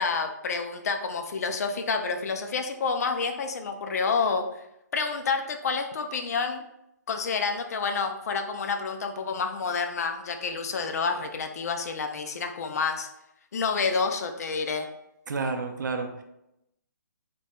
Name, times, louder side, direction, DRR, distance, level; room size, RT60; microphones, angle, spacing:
voice 1, 0.0-4.4 4.9-6.6 7.1-13.1 13.5-14.9, left 5 dB, 55° left, 6 dB, 0.3 m, -29 dB
voice 2, 15.3-16.2, right 4 dB, 80° right, 4 dB, 0.4 m, -30 dB
2.2 x 2.2 x 2.7 m, 0.84 s
hypercardioid pair, 160°, 10 cm